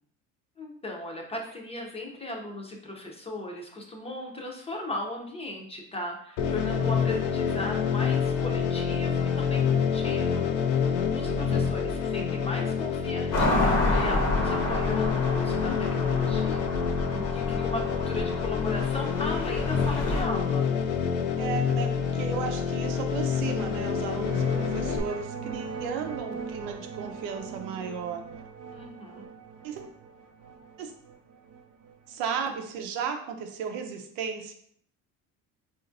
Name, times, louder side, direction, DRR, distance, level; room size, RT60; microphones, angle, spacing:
voice 1, 0.6-10.8 11.1-16.7 17.1-20.7 28.7-29.3, left 1 dB, 15° left, 1 dB, 0.6 m, -37 dB
sound 1, 6.4-25.0, left 7 dB, 85° left, 0.5 m, -27 dB
voice 2, 11.2-11.7 21.4-28.2 29.6-29.8 30.8-30.9 32.1-34.5, right 6 dB, 85° right, 5 dB, 0.6 m, -35 dB
sound 2, 13.3-20.2, left 2 dB, 50° left, 0.8 m, -29 dB
sound 3, 24.1-32.7, right 5 dB, 45° right, 0.4 m, -40 dB
4.1 x 2.5 x 2.6 m, 0.66 s
cardioid pair, 110°, 34 cm